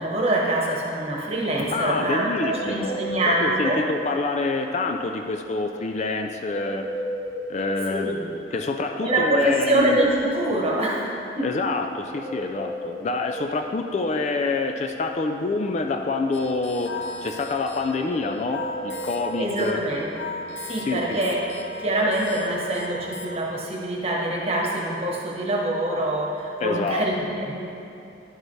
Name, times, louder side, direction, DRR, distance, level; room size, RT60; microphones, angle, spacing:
voice 1, 0.0-3.8 7.9-8.2 9.0-11.5 19.4-20.1 20.7-21.4 21.8-27.6, right 1 dB, 30° right, -3 dB, 1.1 m, -25 dB
voice 2, 1.7-3.0 3.3-6.9 7.5-8.1 8.5-10.0 11.4-19.8 20.9-21.0 26.6-27.1, left 3 dB, 35° left, 4 dB, 0.3 m, -27 dB
sound 1, 2.5-3.9 6.5-7.9 12.1-13.5 18.1-19.5, right 1 dB, ahead, 0.6 m, -34 dB
sound 2, 16.3-23.4, left 3 dB, 75° left, 0.8 m, -37 dB
10.5 x 6.5 x 3.2 m, 2.7 s
head